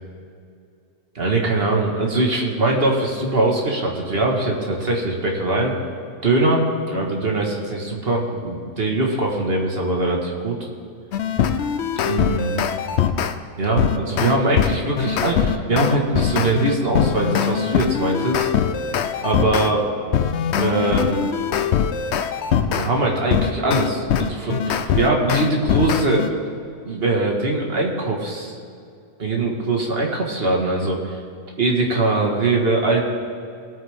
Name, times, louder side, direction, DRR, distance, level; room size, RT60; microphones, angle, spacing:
voice 1, 1.2-5.7 6.2-10.6 12.0-12.6 13.6-18.5 19.2-19.8 20.6-21.3 22.7-26.3 26.9-28.6 29.2-31.2 31.6-33.0, right 2 dB, 40° right, 0 dB, 1.9 m, -22 dB
sound 1, 11.1-13.4 13.8-19.7 20.1-22.9 23.3-26.3, left 8 dB, 60° left, 0.7 m, -22 dB
20.0 x 8.9 x 3.6 m, 2.5 s
omnidirectional pair, 1.6 m